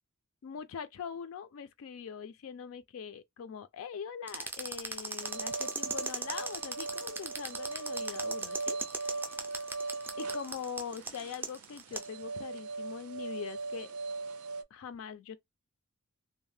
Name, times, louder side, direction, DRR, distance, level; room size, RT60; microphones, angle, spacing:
voice 1, 0.4-9.2 10.2-13.9 14.7-15.4, left 7 dB, 70° left, 0.3 m, -42 dB
sound 1, 4.3-12.1, right 3 dB, 10° right, 0.3 m, -37 dB
sound 2, 5.2-14.6, right 3 dB, 75° right, 0.4 m, -39 dB
2.6 x 2.1 x 3.2 m
head